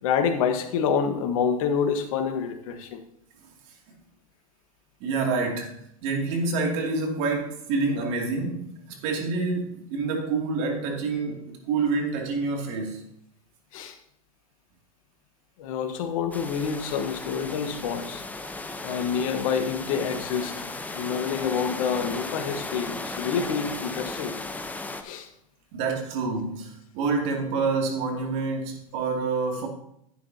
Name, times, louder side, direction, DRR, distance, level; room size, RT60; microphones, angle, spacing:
voice 1, 0.0-3.0 13.7-14.0 15.6-18.2 18.8-24.3 25.0-25.3, left 6 dB, 65° left, 7 dB, 1.4 m, -27 dB
voice 2, 5.0-5.7 6.0-13.0 25.7-29.7, right 4 dB, 55° right, 1 dB, 2.6 m, -27 dB
sound 1, 16.3-25.0, left 2 dB, 10° left, 0.8 m, -36 dB
11.0 x 9.2 x 2.8 m, 0.76 s
hypercardioid pair, 105°, 19 cm